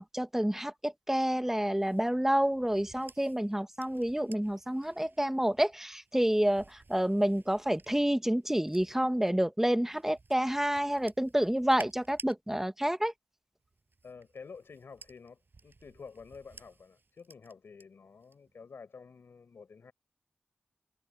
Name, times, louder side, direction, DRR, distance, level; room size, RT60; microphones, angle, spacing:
voice 1, 0.0-13.1, right 1 dB, 10° right, 1.4 m, -29 dB
sound 1, 1.7-9.3 9.9-12.3 13.6-17.8 18.2-18.6, right 3 dB, 60° right, 7.7 m, -55 dB
voice 2, 14.0-19.9, left 5 dB, 90° left, 4.7 m, -50 dB
cardioid pair, 45°, 4 cm